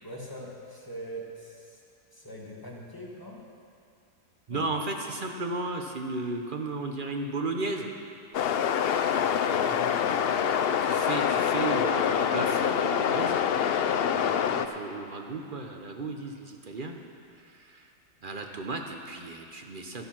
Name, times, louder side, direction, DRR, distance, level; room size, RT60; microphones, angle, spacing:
voice 1, 0.0-1.8 2.1-3.4 4.5-4.7 9.5-10.2 14.1-14.4, equal, 15° left, -3 dB, 1.8 m, -42 dB
voice 2, 4.5-7.9 10.8-13.4 14.5-17.0 17.3-17.9 18.2-20.1, right 3 dB, 40° right, 3 dB, 0.8 m, -34 dB
sound 1, 8.3-14.7, left 8 dB, 85° left, 0.5 m, -25 dB
13.0 x 10.5 x 6.0 m, 2.4 s
omnidirectional pair, 1.7 m